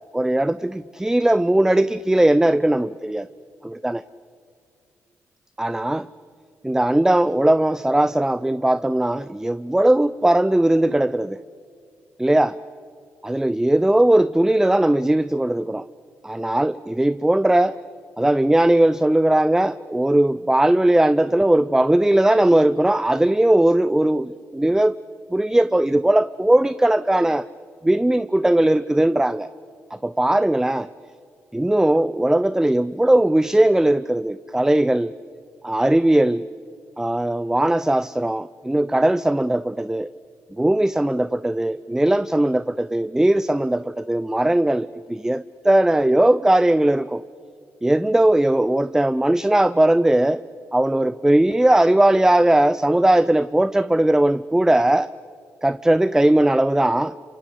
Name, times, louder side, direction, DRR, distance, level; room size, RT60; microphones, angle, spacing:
voice 1, 0.1-3.3 3.6-4.0 5.6-6.1 6.6-11.4 12.2-12.6 13.2-15.8 16.2-17.8 18.2-24.9 25.3-27.5 27.8-29.5 29.9-30.9 31.5-35.1 35.6-36.5 37.0-40.1 40.6-47.2 47.8-50.4 50.7-55.1 55.6-57.1, right 1 dB, 10° right, 16 dB, 0.6 m, -19 dB
27.0 x 25.5 x 8.3 m, 2.2 s
hypercardioid pair, 45°, 6 cm